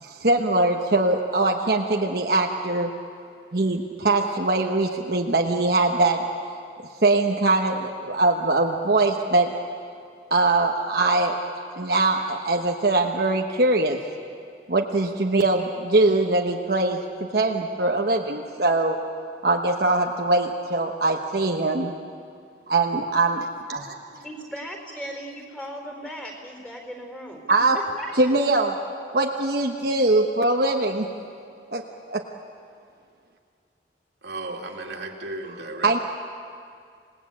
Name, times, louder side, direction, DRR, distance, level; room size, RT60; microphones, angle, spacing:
voice 1, 0.0-2.9 3.5-6.2 7.0-9.6 10.3-14.0 14.7-17.0 17.3-19.0 19.4-21.9 22.7-23.9 27.5-27.8 28.2-28.7 29.1-31.1 31.7-31.8 32.1-32.2 35.8-36.0, right 2 dB, 55° right, 1 dB, 1.1 m, -22 dB
voice 2, 24.2-27.4 27.7-28.5, equal, 5° left, 2 dB, 4.1 m, -37 dB
voice 3, 34.2-36.0, right 2 dB, 70° right, 0 dB, 2.6 m, -35 dB
28.0 x 19.0 x 8.6 m, 2.3 s
head